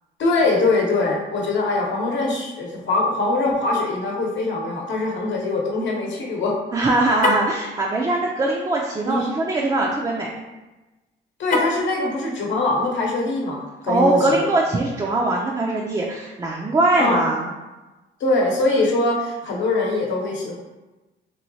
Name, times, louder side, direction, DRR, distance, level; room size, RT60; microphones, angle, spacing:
voice 1, 0.2-6.5 9.0-9.3 11.4-14.5 17.0-17.2 18.2-20.5, left 2 dB, 70° left, -2 dB, 0.9 m, -22 dB
voice 2, 6.7-10.4 13.9-17.5, right 2 dB, 20° right, -2 dB, 0.4 m, -21 dB
Car, 7.1-7.6 11.4-11.9, left 2 dB, 40° left, 0.5 m, -23 dB
3.1 x 2.7 x 2.7 m, 1.1 s
cardioid pair, 90°, 20 cm